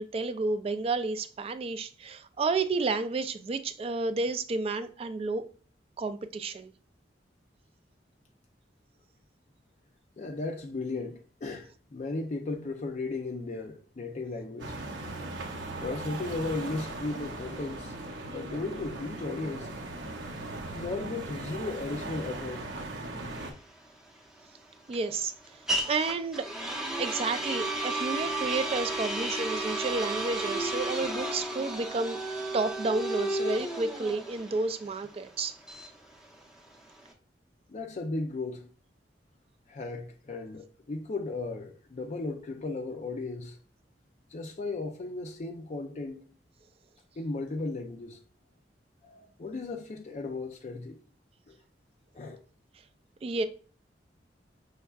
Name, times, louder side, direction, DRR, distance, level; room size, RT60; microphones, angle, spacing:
voice 1, 0.0-5.4 6.0-6.7 24.9-25.3 25.9-26.5 27.0-32.2 32.5-35.6 53.2-53.4, right 3 dB, 35° right, 0.3 m, -31 dB
voice 2, 10.2-14.8 15.8-18.0 18.2-19.8 20.7-22.7 37.7-38.7 39.7-43.6 44.3-46.2 47.2-48.2 49.0-51.0 51.5-51.6 52.1-52.4, left 3 dB, 40° left, 0.4 m, -36 dB
sound 1, 14.6-23.5, right 2 dB, 85° right, 0.9 m, -39 dB
sound 2, 23.3-37.1, right 1 dB, 5° right, 0.7 m, -33 dB
5.5 x 3.4 x 2.3 m
head